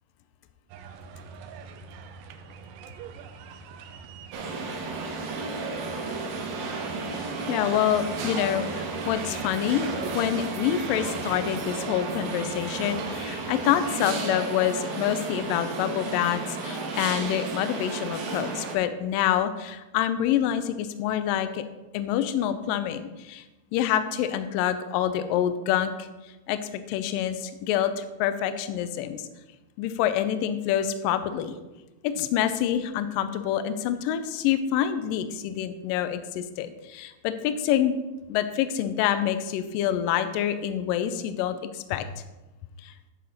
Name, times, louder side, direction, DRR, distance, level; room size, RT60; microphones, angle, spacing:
sound 1, 0.7-13.8, right 6 dB, 90° right, 1.9 m, -44 dB
sound 2, 4.3-18.8, right 3 dB, 70° right, 2.5 m, -33 dB
voice 1, 7.5-9.9 10.1-21.6 21.9-23.4 23.7-26.1 26.5-26.6 26.9-29.3 29.8-31.6 32.0-37.9 38.3-42.1 42.8-42.9, left 10 dB, 85° left, 10 dB, 2.0 m, -27 dB
10.0 x 6.5 x 4.0 m, 1.1 s
omnidirectional pair, 4.6 m